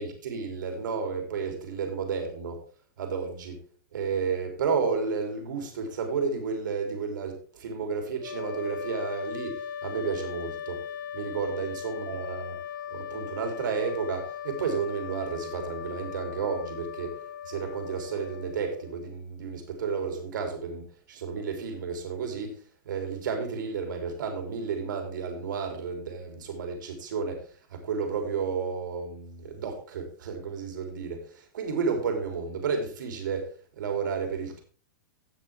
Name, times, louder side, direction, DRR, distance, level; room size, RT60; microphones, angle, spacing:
voice 1, 0.0-2.6 3.0-3.6 3.9-10.8 11.1-12.6 12.9-17.2 17.5-22.6 22.9-34.6, right 5 dB, 80° right, 4 dB, 3.6 m, -32 dB
sound 1, 8.2-19.1, left 8 dB, 85° left, 0.8 m, -39 dB
17.0 x 6.5 x 3.6 m, 0.41 s
supercardioid pair, 160°, 10 cm